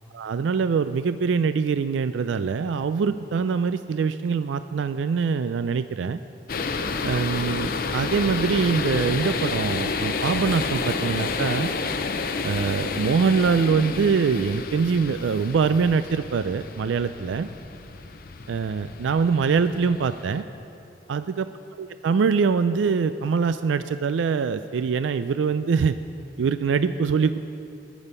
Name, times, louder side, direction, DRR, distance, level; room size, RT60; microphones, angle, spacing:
voice 1, 0.1-6.2 7.0-11.7 12.4-17.5 18.5-20.4 21.1-21.5 21.8-26.0 26.4-27.4, right 5 dB, 90° right, 12 dB, 0.4 m, -23 dB
sound 1, 6.5-20.4, left 4 dB, 50° left, 0.6 m, -30 dB
20.0 x 7.0 x 5.6 m, 2.7 s
head